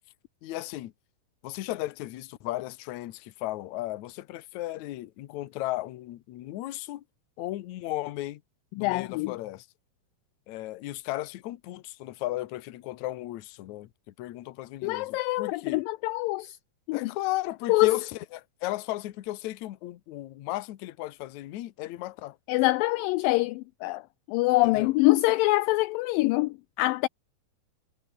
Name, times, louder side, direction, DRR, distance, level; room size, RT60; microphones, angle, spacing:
voice 1, 0.4-0.9 1.4-7.0 7.4-8.4 8.8-9.7 10.5-13.9 14.2-15.8 16.9-22.4 24.6-24.9, left 16 dB, 65° left, 2.0 m, -35 dB
voice 2, 8.8-9.3 14.8-16.6 16.9-17.1 17.7-18.0 22.5-27.1, left 20 dB, 80° left, 2.1 m, -25 dB
omnidirectional pair, 4.2 m